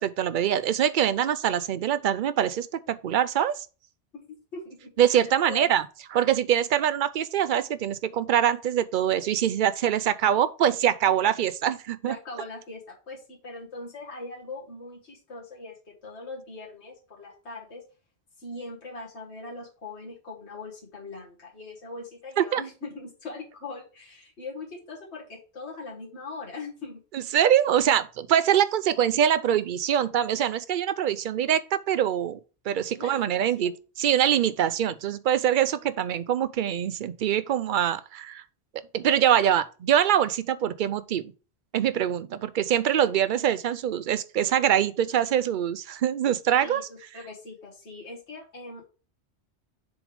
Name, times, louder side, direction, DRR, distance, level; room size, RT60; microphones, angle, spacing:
voice 1, 0.0-3.7 5.0-5.8 6.1-12.1 22.4-22.6 27.3-32.4 32.7-33.7 34.0-38.4 38.9-41.3 41.7-46.9, right 10 dB, 60° right, 0.6 m, -24 dB
voice 2, 4.1-5.7 12.1-17.8 18.4-27.0 28.5-28.6 33.0-33.7 46.5-48.9, left 3 dB, 85° left, 2.2 m, -41 dB
7.1 x 3.5 x 4.8 m
omnidirectional pair, 1.1 m